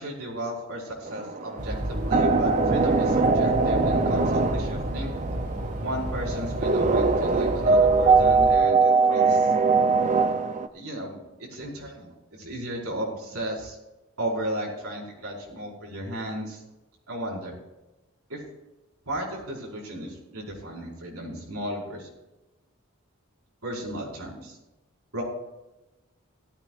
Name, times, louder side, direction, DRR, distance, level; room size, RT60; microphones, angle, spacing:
voice 1, 0.0-5.2 5.8-9.5 10.7-13.8 14.2-16.6 17.1-17.6 18.3-18.4 19.1-22.1 23.6-24.6 25.1-25.2, right 1 dB, 85° right, -4 dB, 5.2 m, -35 dB
sound 1, 1.1-10.7, right 4 dB, 35° right, 0.6 m, -22 dB
sound 2, 1.6-8.6, equal, 50° right, 3.9 m, -33 dB
17.0 x 14.0 x 2.5 m, 1.0 s
head